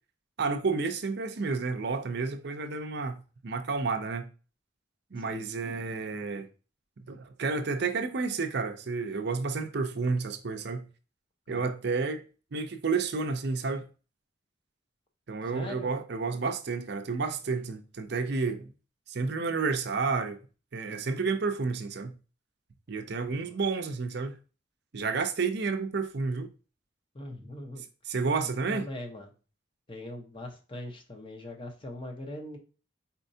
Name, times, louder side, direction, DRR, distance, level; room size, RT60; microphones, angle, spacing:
voice 1, 0.4-3.2 3.4-4.3 5.1-6.5 7.0-10.9 11.5-12.2 12.5-13.9 15.3-18.7 19.1-20.4 20.7-22.1 22.9-24.3 24.9-26.5 28.1-28.9, right 4 dB, 55° right, 0.6 m, -30 dB
voice 2, 15.5-15.9 23.3-23.6 27.1-27.8 28.4-29.3 29.9-32.6, left 1 dB, 25° left, 0.9 m, -41 dB
4.4 x 4.3 x 2.7 m
head